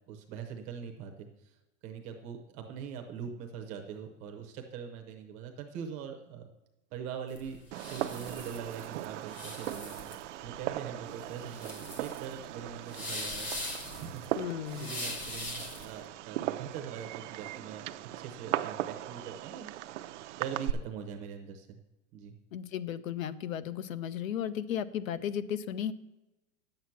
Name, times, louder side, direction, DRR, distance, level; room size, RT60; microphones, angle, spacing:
voice 1, 0.1-1.5 1.8-6.5 6.9-13.5 14.0-14.3 14.7-17.9 18.2-19.7 20.3-21.8 22.1-22.3, right 7 dB, 15° right, 4 dB, 0.6 m, -42 dB
sound 1, 7.3-16.0, left 2 dB, 20° left, 0.9 m, -41 dB
Fireworks, 7.7-20.7, right 14 dB, 60° right, 0.5 m, -38 dB
voice 2, 14.4-14.9 22.5-25.9, left 9 dB, 70° left, 16 dB, 0.8 m, -35 dB
10.5 x 7.9 x 5.7 m, 1.0 s
supercardioid pair, 175°, 42 cm